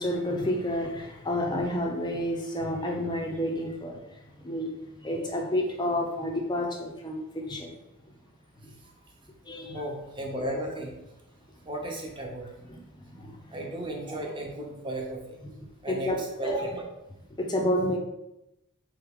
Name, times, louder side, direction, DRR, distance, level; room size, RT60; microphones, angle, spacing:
voice 1, 0.0-4.7 5.0-7.7 8.6-8.7 9.4-9.8 12.7-13.4 15.9-16.2 17.4-18.0, left 1 dB, 20° left, 1 dB, 0.4 m, -30 dB
voice 2, 9.7-10.9 11.7-12.5 13.5-15.4 15.8-16.1 16.4-16.8, right 1 dB, 20° right, 0 dB, 0.7 m, -34 dB
3.9 x 3.5 x 3.5 m, 0.90 s
head